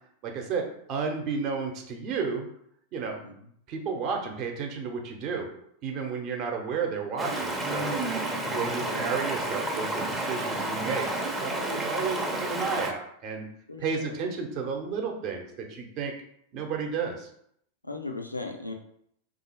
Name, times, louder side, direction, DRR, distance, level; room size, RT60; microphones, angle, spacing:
voice 1, 0.2-2.5 2.9-3.2 3.7-5.5 5.8-8.0 8.4-11.1 11.4-13.5 13.8-16.1 16.5-17.3, right 5 dB, 40° right, 2 dB, 0.8 m, -32 dB
Stream, 7.2-12.9, right 1 dB, 10° right, 0.7 m, -30 dB
voice 2, 8.5-9.2 13.7-14.2 17.8-18.7, left 2 dB, 85° left, 3 dB, 0.6 m, -38 dB
3.5 x 2.7 x 4.1 m, 0.70 s
figure-of-eight pair, 90°, 0 cm